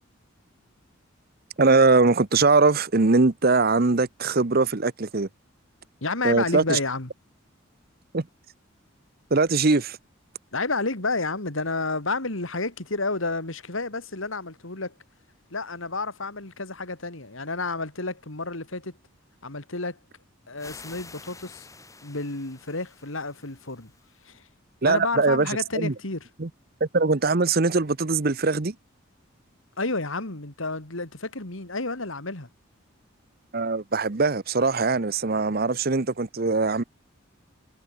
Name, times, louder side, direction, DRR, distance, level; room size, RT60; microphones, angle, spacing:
voice 1, 1.6-5.3 6.2-6.8 8.1-8.3 9.3-10.0 24.8-25.9 26.4-26.5 26.8-28.7 33.5-36.8, right 3 dB, 45° right, 0.9 m, -21 dB
voice 2, 6.0-7.1 10.5-14.9 15.5-19.0 19.4-20.0 20.5-21.7 22.0-23.9 24.2-24.4 24.8-26.3 29.8-32.5, left 3 dB, 75° left, 2.8 m, -30 dB
sound 1, 20.6-24.2, left 3 dB, 15° left, 4.9 m, -48 dB
head